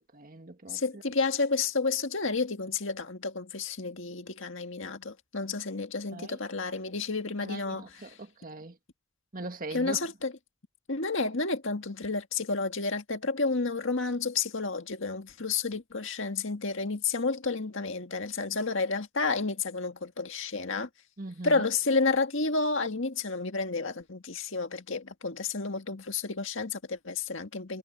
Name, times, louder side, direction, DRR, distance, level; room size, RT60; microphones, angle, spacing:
voice 1, 0.1-1.0 6.1-6.4 7.4-8.8 9.3-10.0 21.2-21.7, right 2 dB, 40° right, 1.8 m, -41 dB
voice 2, 0.7-7.9 9.7-10.3 10.9-20.9 21.4-27.8, left 4 dB, 60° left, 1.9 m, -30 dB
head